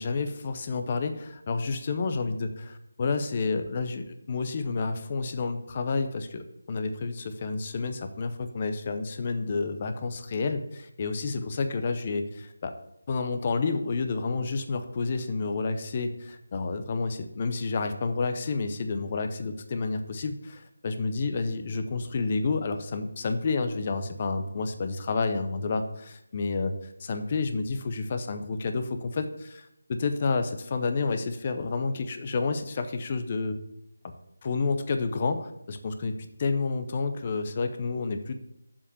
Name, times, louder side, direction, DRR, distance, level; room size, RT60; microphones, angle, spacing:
voice 1, 0.0-12.7 13.1-26.7 27.0-33.6 34.4-38.3, left 4 dB, 25° left, 8 dB, 0.6 m, -30 dB
7.1 x 5.1 x 6.7 m, 0.80 s
figure-of-eight pair, 170°, 0 cm